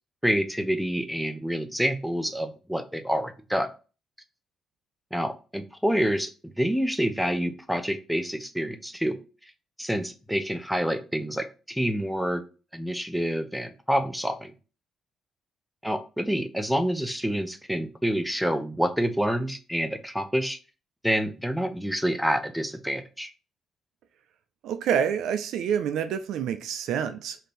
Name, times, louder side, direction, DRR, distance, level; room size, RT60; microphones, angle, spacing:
voice 1, 0.2-3.7 5.1-9.2 9.8-12.4 12.7-14.5 15.8-20.6 21.0-23.3, equal, ahead, 0.6 m, -27 dB
voice 2, 24.6-27.4, right 8 dB, 80° right, 0.4 m, -27 dB
3.3 x 2.8 x 4.1 m
cardioid pair, 90°, 0 cm